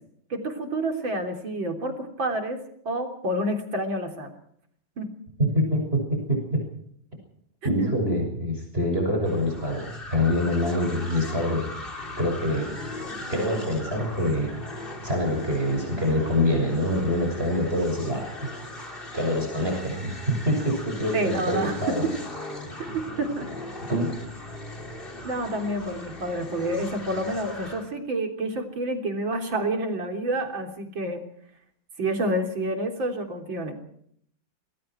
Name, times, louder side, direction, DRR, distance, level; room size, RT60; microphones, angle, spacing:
voice 1, 0.3-2.6 2.9-4.3 5.0-5.1 7.8-7.9 21.1-22.1 22.9-23.5 25.2-31.2 32.0-33.7, right 1 dB, 85° right, 4 dB, 4.3 m, -28 dB
voice 2, 5.4-6.6 7.6-11.7 12.2-12.8 13.3-14.5 15.0-18.3 19.1-22.1 23.8-24.3, left 1 dB, 30° right, 2 dB, 6.4 m, -25 dB
sound 1, 9.2-27.9, left 1 dB, 25° left, 3.6 m, -39 dB
28.5 x 21.0 x 4.6 m, 0.67 s
omnidirectional pair, 2.1 m